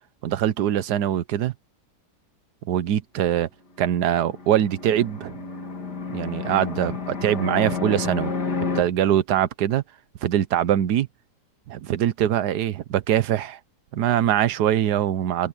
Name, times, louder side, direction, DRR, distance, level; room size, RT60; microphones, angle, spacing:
voice 1, 0.2-1.5 2.7-3.5 3.8-5.4 6.1-8.3 8.6-9.8 10.2-11.1 11.7-13.6 13.9-15.5, right 11 dB, 70° right, 1.4 m, -23 dB
Fixed-wing aircraft airplane, 3.9-8.8, left 4 dB, 70° left, 3.1 m, -31 dB
omnidirectional pair, 1.8 m